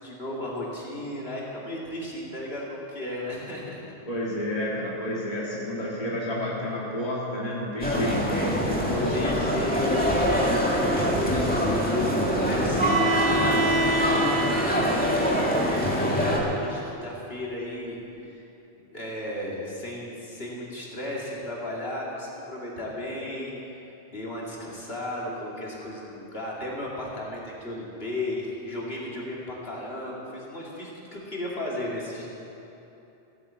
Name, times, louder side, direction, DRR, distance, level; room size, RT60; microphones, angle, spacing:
voice 1, 0.0-3.8 8.9-18.4 18.9-23.5 24.1-32.3, left 1 dB, 55° left, -5 dB, 2.7 m, -35 dB
voice 2, 4.1-9.6 12.2-13.0, left 1 dB, 30° left, -5 dB, 2.2 m, -30 dB
sound 1, 7.8-16.4, equal, 5° left, 2.0 m, -24 dB
Bowed string instrument, 12.8-16.7, right 2 dB, 45° right, 0.7 m, -28 dB
15.5 x 9.6 x 7.5 m, 3.0 s
omnidirectional pair, 1.2 m